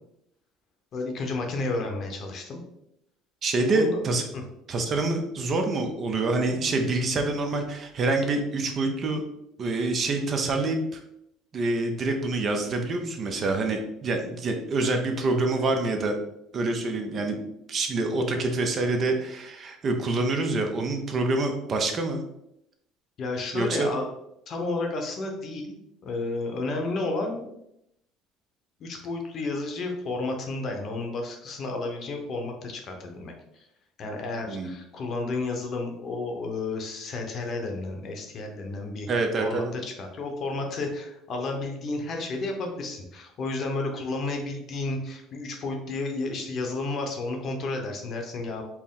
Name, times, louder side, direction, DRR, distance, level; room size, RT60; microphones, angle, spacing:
voice 1, 0.9-2.6 3.7-4.0 4.3-4.4 23.2-24.1 24.5-25.8 26.0-27.5 28.8-33.3 34.0-48.6, left 3 dB, 45° left, 3 dB, 0.8 m, -32 dB
voice 2, 3.4-4.2 4.7-9.2 9.6-11.0 11.5-16.2 16.5-17.4 17.7-22.2 23.5-23.9 34.5-34.7 39.1-39.7, right 2 dB, 40° right, 4 dB, 0.6 m, -26 dB
4.4 x 2.1 x 3.7 m, 0.80 s
cardioid pair, 115°, 0 cm